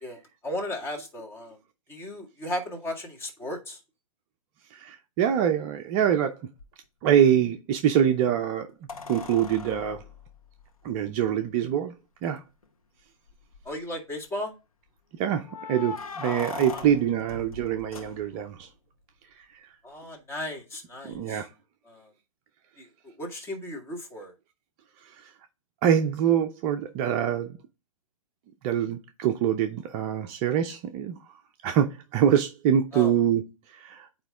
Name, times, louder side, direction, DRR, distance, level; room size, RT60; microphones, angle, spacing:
voice 1, 0.0-1.6 1.9-3.8 13.7-14.5 16.7-16.8 19.8-21.4 21.9-22.1 22.8-24.3 32.9-33.2, left 1 dB, 15° left, 1.8 m, -36 dB
voice 2, 4.7-6.4 7.0-8.7 9.1-10.0 10.8-11.9 12.2-12.4 15.2-18.7 21.0-21.5 25.0-25.2 25.8-27.6 28.6-31.2 31.6-33.4 33.7-34.1, right 9 dB, 30° right, 0.6 m, -24 dB
sound 1, 6.6-6.7 8.9-11.3 12.2-12.3 12.6-12.7 13.3-13.8 15.5-18.6 21.1-21.2, left 4 dB, 85° left, 1.4 m, -40 dB
8.7 x 3.1 x 3.6 m
hypercardioid pair, 135°, 18 cm